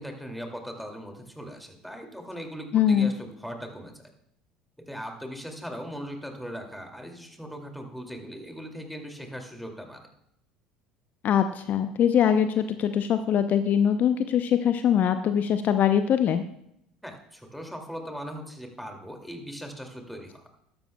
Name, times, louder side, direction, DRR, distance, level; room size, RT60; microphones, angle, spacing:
voice 1, 0.0-4.1 4.9-10.1 17.0-20.5, equal, ahead, 3 dB, 2.4 m, -39 dB
voice 2, 2.7-3.1 11.2-16.4, left 9 dB, 45° left, 9 dB, 0.6 m, -22 dB
14.0 x 12.0 x 2.3 m, 0.75 s
hypercardioid pair, 65°, 4 cm